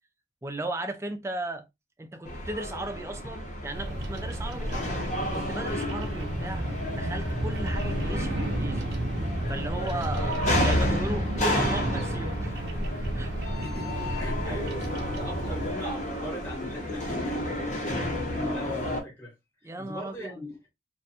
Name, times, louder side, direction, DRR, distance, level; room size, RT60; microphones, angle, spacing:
voice 1, 0.4-1.7 2.0-5.0 5.3-6.7 6.9-8.9 9.5-12.6 13.1-13.3 14.5-14.6 19.6-20.4, right 2 dB, 15° right, 0.3 m, -36 dB
sound 1, 2.2-19.0, left 1 dB, 40° left, 0.7 m, -31 dB
Bird vocalization bird call bird song, 3.7-15.7, right 1 dB, 70° right, 0.6 m, -32 dB
voice 2, 13.5-19.3 19.6-20.6, equal, 10° left, 0.9 m, -39 dB
2.5 x 2.2 x 2.7 m
head